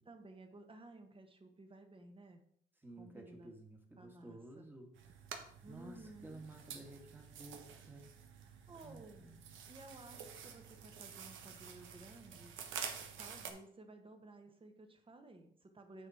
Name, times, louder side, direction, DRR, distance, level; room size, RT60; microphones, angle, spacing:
voice 1, 0.0-2.4 3.0-3.5 4.0-4.7 5.6-6.5 8.4-9.3 9.7-12.6 13.2-16.1, right 2 dB, 25° right, 6 dB, 1.4 m, -56 dB
voice 2, 2.8-4.9 5.7-8.1 8.8-9.5, right 2 dB, 10° right, 2 dB, 1.7 m, -53 dB
sound 1, 4.9-13.5, right 7 dB, 80° right, 1.1 m, -49 dB
9.0 x 4.4 x 4.5 m, 0.65 s
cardioid pair, 90°, 20 cm